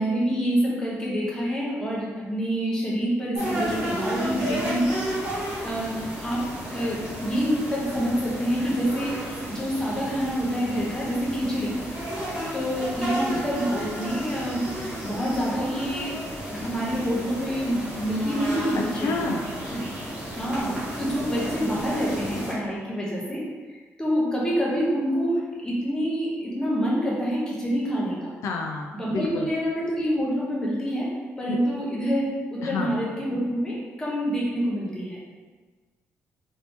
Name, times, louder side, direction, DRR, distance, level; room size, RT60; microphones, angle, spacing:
voice 1, 0.0-9.2 9.5-11.7 12.5-16.1 16.4-19.2 19.7-19.9 20.3-23.4 24.0-28.3 28.9-31.1 31.4-35.2, equal, 10° left, -5 dB, 0.7 m, -27 dB
sound 1, 3.3-22.5, right 1 dB, 20° right, 1.0 m, -33 dB
voice 2, 13.1-13.4 18.9-19.4 28.4-29.5 31.5-31.6 32.6-32.9, left 3 dB, 75° left, 0 dB, 0.4 m, -29 dB
2.8 x 2.7 x 3.5 m, 1.4 s
cardioid pair, 165°, 5 cm